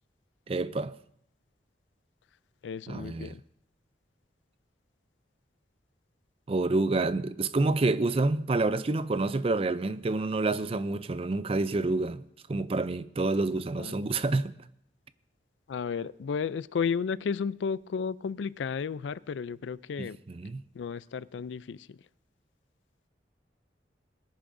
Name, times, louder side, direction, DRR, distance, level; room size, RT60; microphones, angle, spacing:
voice 1, 0.5-0.9 2.9-3.4 6.5-12.2 12.5-14.5 20.0-20.6, right 2 dB, 30° right, 0.4 m, -28 dB
voice 2, 2.6-3.4 13.8-14.0 15.7-20.2 20.7-22.0, left 6 dB, 85° left, 0.4 m, -33 dB
21.0 x 10.5 x 2.6 m
head